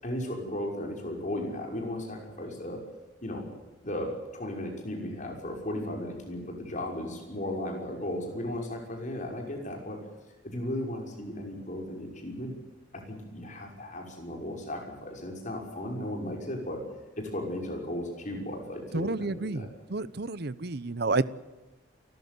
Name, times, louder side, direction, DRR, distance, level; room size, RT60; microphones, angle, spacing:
voice 1, 0.0-2.8 3.2-3.5 3.8-10.0 10.4-12.5 12.9-16.8 17.2-19.7, left 1 dB, 40° left, 1 dB, 6.0 m, -35 dB
voice 2, 18.9-21.3, right 3 dB, 55° right, 17 dB, 0.9 m, -30 dB
29.5 x 13.5 x 9.5 m, 1.2 s
head